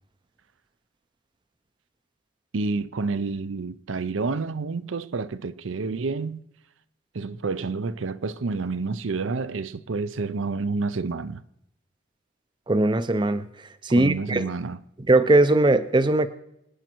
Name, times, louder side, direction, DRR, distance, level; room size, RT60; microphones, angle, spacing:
voice 1, 2.5-6.4 7.1-11.4 13.9-14.8, right 4 dB, 80° right, 0.6 m, -29 dB
voice 2, 12.7-13.5 13.8-14.4 15.1-16.3, right 2 dB, 25° right, 0.5 m, -19 dB
26.0 x 9.2 x 4.5 m
head